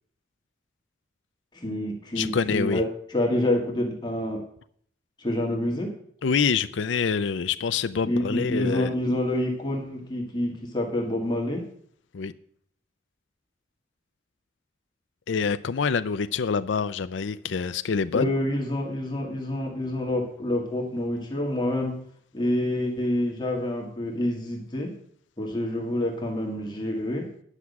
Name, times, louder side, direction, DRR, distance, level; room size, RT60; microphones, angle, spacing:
voice 1, 1.5-4.4 5.2-5.9 8.0-11.6 18.1-21.9 22.3-24.9 25.4-27.2, left 1 dB, 25° left, 1.8 m, -27 dB
voice 2, 2.2-2.8 6.2-8.9 12.1-12.3 15.3-18.3, left 5 dB, 80° left, 0.5 m, -26 dB
9.9 x 6.0 x 8.3 m
head